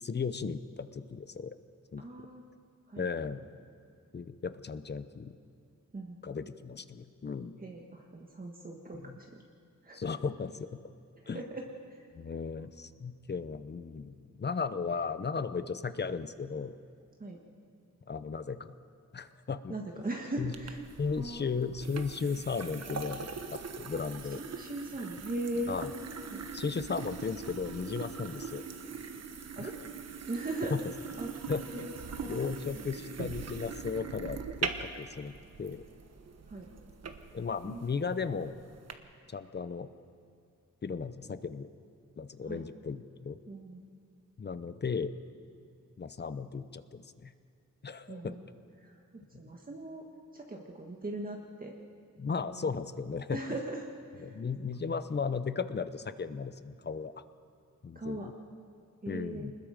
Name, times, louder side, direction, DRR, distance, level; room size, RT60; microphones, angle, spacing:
voice 1, 0.0-1.6 1.9-2.3 3.0-3.4 4.1-5.3 6.2-7.5 8.9-9.2 9.9-10.8 11.3-11.4 12.1-16.7 18.1-18.7 19.1-19.7 20.4-20.5 21.0-24.4 25.7-25.9 26.5-28.6 29.6-29.7 30.7-30.8 31.5-31.9 32.2-35.3 35.6-35.8 37.3-38.5 39.3-39.9 40.8-41.7 42.2-43.4 44.4-45.1 46.0-47.3 47.8-48.3 52.2-53.4 54.2-57.1 57.8-58.3 59.1-59.5, left 5 dB, 35° left, 12 dB, 0.7 m, -36 dB
voice 2, 2.0-2.4 2.9-3.1 5.9-6.2 7.6-9.3 9.8-10.0 11.3-12.0 12.6-12.7 17.2-17.4 19.7-20.8 21.2-21.5 24.4-25.8 26.3-26.4 29.6-29.8 30.3-30.8 31.2-31.3 31.7-32.4 32.7-32.9 36.5-36.7 37.6-37.8 42.4-42.6 43.5-43.8 48.1-48.4 48.8-50.0 50.3-51.7 52.4-52.7 53.3-54.4 57.9-58.3 59.0-59.5, right 2 dB, 30° right, 0 dB, 1.6 m, -39 dB
sound 1, 20.5-38.9, right 5 dB, 55° right, 1.3 m, -42 dB
25.5 x 20.5 x 5.2 m, 2.3 s
wide cardioid pair, 125°, 31 cm